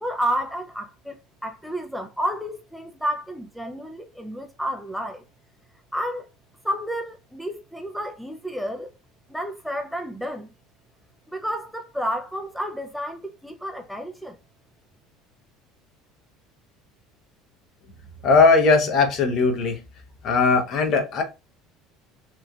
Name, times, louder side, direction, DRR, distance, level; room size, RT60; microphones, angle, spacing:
voice 1, 0.0-1.2 1.4-5.2 5.9-6.3 6.6-8.9 9.3-10.5 11.3-14.4, equal, ahead, 0.4 m, -30 dB
voice 2, 18.2-19.8 20.2-21.2, left 4 dB, 55° left, 0.8 m, -19 dB
3.1 x 2.5 x 2.2 m
supercardioid pair, 95°, 0 cm